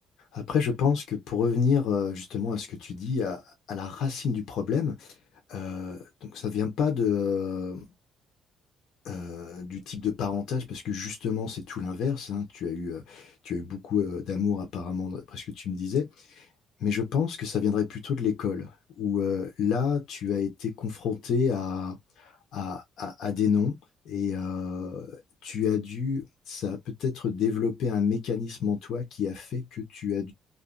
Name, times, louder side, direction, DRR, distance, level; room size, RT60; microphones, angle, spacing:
voice 1, 0.3-5.2 5.5-7.8 9.0-16.5 16.8-23.8 24.1-30.3, left 6 dB, 70° left, 0.7 m, -29 dB
2.5 x 2.1 x 2.4 m
cardioid pair, 110°, 0 cm